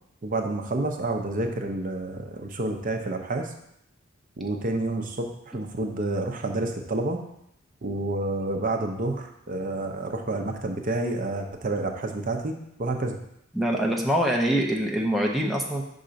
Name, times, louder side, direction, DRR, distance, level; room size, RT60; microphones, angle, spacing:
voice 1, 0.2-3.5 4.4-7.2 7.8-13.3, right 2 dB, 45° right, 4 dB, 0.6 m, -29 dB
voice 2, 13.5-15.8, right 1 dB, ahead, -1 dB, 0.6 m, -24 dB
5.6 x 3.8 x 5.1 m, 0.76 s
head